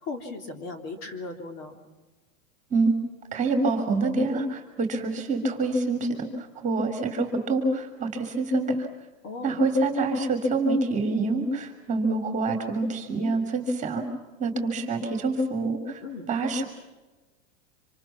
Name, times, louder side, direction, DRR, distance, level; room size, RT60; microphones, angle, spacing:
voice 1, 0.0-1.8 9.2-9.7 16.0-16.3, left 3 dB, 40° left, 5 dB, 3.3 m, -37 dB
voice 2, 3.3-6.3 6.6-8.8 9.4-14.0 14.4-16.0 16.3-16.6, right 2 dB, 20° right, 5 dB, 3.2 m, -26 dB
26.5 x 26.5 x 6.0 m, 1.2 s
supercardioid pair, 155°, 40 cm